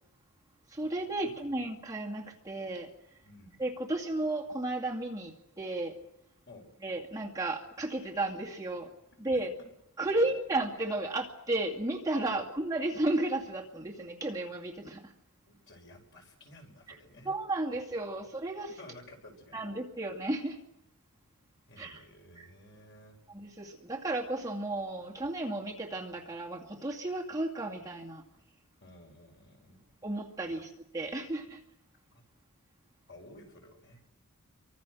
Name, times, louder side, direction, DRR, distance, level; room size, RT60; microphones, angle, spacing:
voice 1, 0.7-2.9 3.6-6.0 6.8-8.9 9.2-9.5 10.0-15.1 17.2-18.8 19.5-20.6 21.8-22.0 22.4-22.5 23.3-28.2 30.0-31.6, right 2 dB, 15° right, -1 dB, 2.2 m, -33 dB
voice 2, 1.2-1.5 3.2-3.6 6.5-6.7 10.1-10.3 12.3-12.5 15.5-17.3 18.8-19.7 21.7-23.2 28.8-29.8 30.6-30.7 32.1-32.2 33.1-34.0, left 1 dB, 55° left, 2 dB, 5.5 m, -53 dB
29.0 x 24.0 x 6.3 m, 0.81 s
head